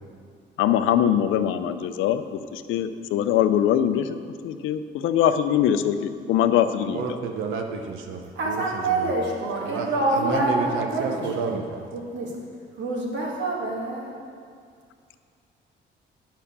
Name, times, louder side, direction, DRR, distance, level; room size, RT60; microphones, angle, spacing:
voice 1, 0.6-4.2 4.4-7.2, left 10 dB, 90° left, 10 dB, 0.5 m, -22 dB
voice 2, 6.9-9.1 9.6-11.8, right 5 dB, 85° right, 3 dB, 0.8 m, -30 dB
voice 3, 8.4-11.6 11.9-12.3 12.8-14.2, right 2 dB, 65° right, -2 dB, 2.0 m, -26 dB
8.7 x 5.7 x 6.7 m, 2.2 s
cardioid pair, 90°, 20 cm